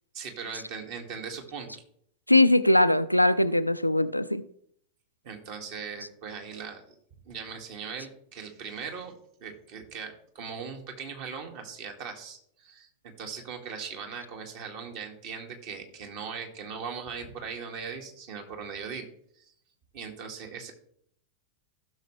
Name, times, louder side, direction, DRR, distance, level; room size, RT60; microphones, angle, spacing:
voice 1, 0.1-1.8 5.2-6.8 7.3-9.2 9.4-19.1 19.4-19.5 19.9-20.7, right 6 dB, 45° right, 2.0 m, -39 dB
voice 2, 2.3-4.4, left 1 dB, 90° left, 0.4 m, -21 dB
15.5 x 6.4 x 3.2 m
figure-of-eight pair, 90°, 0 cm